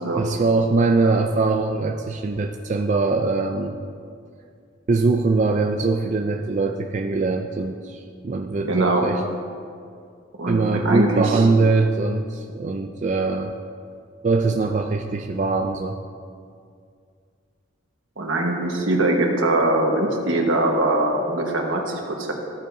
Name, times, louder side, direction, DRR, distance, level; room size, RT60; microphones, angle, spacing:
voice 1, 0.0-3.8 4.9-9.2 10.5-13.5 14.2-16.0, right 3 dB, 35° right, 3 dB, 0.4 m, -22 dB
voice 2, 8.6-9.1 10.4-11.4 18.2-22.3, right 2 dB, 80° right, 1 dB, 1.4 m, -22 dB
14.5 x 8.6 x 2.7 m, 2.3 s
head